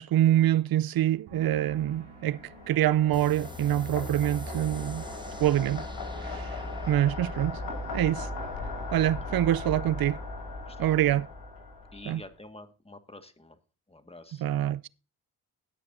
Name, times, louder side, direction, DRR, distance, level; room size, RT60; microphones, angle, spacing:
voice 1, 0.0-5.0 5.4-5.9 6.2-6.6 6.9-7.6 7.9-8.3 8.9-10.2 10.8-11.3 12.1-12.2 14.4-14.9, right 12 dB, 60° right, 0.6 m, -25 dB
sound 1, 1.3-8.7 9.0-9.5, right 4 dB, 90° right, 3.4 m, -54 dB
sound 2, 1.6-12.2, left 3 dB, 70° left, 5.2 m, -39 dB
sound 3, 3.1-10.2, right 1 dB, 10° right, 1.4 m, -41 dB
voice 2, 10.7-11.2 11.9-13.6 13.9-14.4, left 2 dB, 15° left, 1.8 m, -48 dB
19.5 x 6.8 x 2.7 m
supercardioid pair, 45°, 41 cm